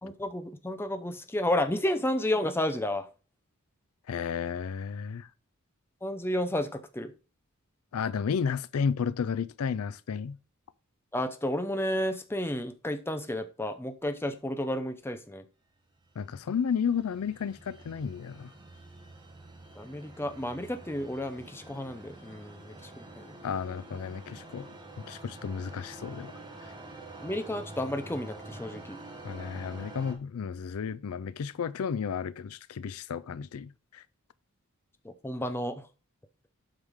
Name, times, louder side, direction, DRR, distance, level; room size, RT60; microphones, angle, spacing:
voice 1, 0.0-3.1 6.0-7.1 11.1-15.4 19.8-23.4 27.2-29.0 35.0-35.9, left 1 dB, 10° left, 0.6 m, -32 dB
voice 2, 4.1-5.3 7.9-10.4 16.2-18.5 23.4-24.7 25.0-26.3 29.2-34.0, left 6 dB, 85° left, 0.4 m, -32 dB
sound 1, 16.0-30.1, right 2 dB, 20° right, 1.2 m, -47 dB
8.0 x 5.7 x 3.6 m
head